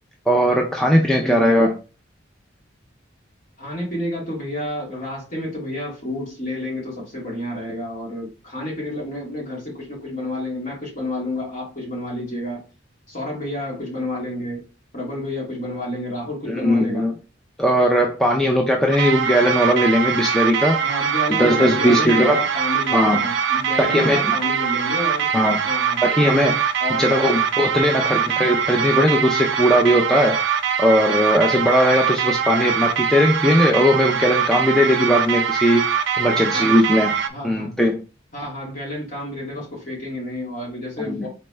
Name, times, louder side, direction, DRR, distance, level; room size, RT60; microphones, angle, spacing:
voice 1, 0.3-1.7 16.5-17.1 17.6-20.8 21.4-22.4 22.9-23.2 23.8-24.3 25.3-25.6 26.0-26.7 27.0-30.4 30.8-35.9 36.2-37.1 37.4-38.0 41.0-41.2, equal, 5° left, 0.4 m, -18 dB
voice 2, 1.2-1.6 3.6-12.6 13.1-14.6 14.9-17.1 20.8-25.3 25.6-26.0 26.8-27.4 27.7-28.1 36.3-36.7 37.3-37.8 38.3-41.3, left 1 dB, 40° left, 2.0 m, -30 dB
sound 1, 18.9-37.3, right 7 dB, 65° right, 0.5 m, -22 dB
4.2 x 3.3 x 3.2 m
head